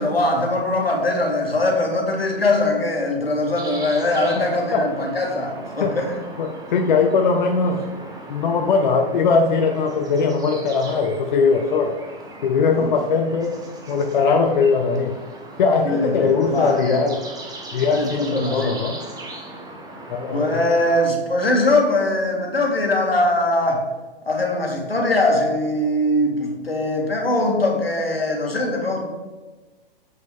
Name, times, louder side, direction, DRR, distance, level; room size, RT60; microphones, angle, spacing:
voice 1, 0.0-6.1 12.8-12.9 15.8-17.0 17.9-18.8 20.3-23.8 24.3-29.0, left 1 dB, 85° left, 1 dB, 1.9 m, -21 dB
sound 1, 3.6-21.1, right 2 dB, 15° right, 1.0 m, -38 dB
voice 2, 6.4-7.8 8.3-12.0 12.4-13.6 13.9-15.2 15.6-17.2 17.7-19.0 20.1-20.6, left 4 dB, 50° left, 4 dB, 0.7 m, -20 dB
7.6 x 6.0 x 3.7 m, 1.2 s
figure-of-eight pair, 115°, 29 cm